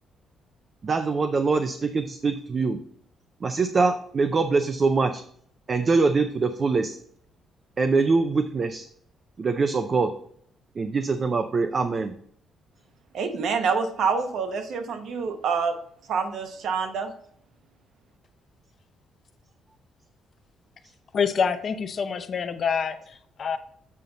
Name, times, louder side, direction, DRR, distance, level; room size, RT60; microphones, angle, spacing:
voice 1, 0.8-2.8 3.4-5.2 5.7-7.0 7.8-8.9 9.4-10.1 10.8-12.1, right 4 dB, 30° right, 0.4 m, -23 dB
voice 2, 13.1-15.8 16.1-17.1, right 5 dB, 60° right, 0.9 m, -26 dB
voice 3, 21.1-23.6, left 6 dB, 40° left, 0.5 m, -26 dB
7.6 x 5.4 x 3.9 m
cardioid pair, 165°, 0 cm